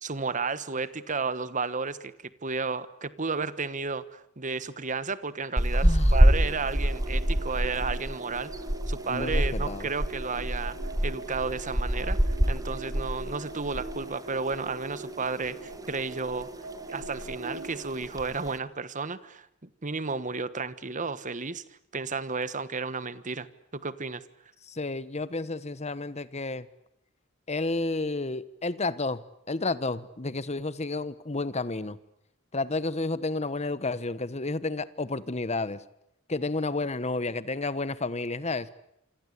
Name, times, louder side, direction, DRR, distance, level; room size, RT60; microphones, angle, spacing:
voice 1, 0.0-2.1 2.4-8.5 8.9-10.8 11.0-16.5 16.9-21.6 21.9-23.5 23.7-24.2, right 4 dB, 40° right, 15 dB, 1.3 m, -32 dB
sound 1, 5.6-14.1 14.3-14.6 14.9-15.8 16.1-16.5 16.7-16.8 17.0-17.5 18.0-18.5, equal, 15° right, 1.4 m, -26 dB
voice 2, 5.8-6.2 9.1-9.9 24.7-26.7 27.5-29.2 29.5-32.0 32.5-35.8 36.3-38.7, left 3 dB, 30° left, 16 dB, 1.2 m, -31 dB
sound 2, 6.1-18.0, right 3 dB, 70° right, 7.6 m, -42 dB
27.5 x 25.0 x 8.4 m, 0.76 s
head